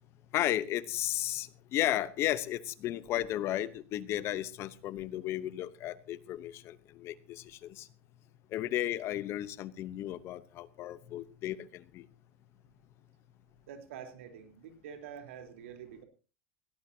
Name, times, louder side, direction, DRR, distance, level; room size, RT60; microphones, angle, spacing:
voice 1, 0.3-7.9 8.5-12.1, left 13 dB, 40° left, 16 dB, 0.9 m, -34 dB
voice 2, 13.7-16.0, right 8 dB, 80° right, 6 dB, 3.7 m, -47 dB
18.0 x 17.0 x 2.8 m, 0.34 s
supercardioid pair, 140°, 7 cm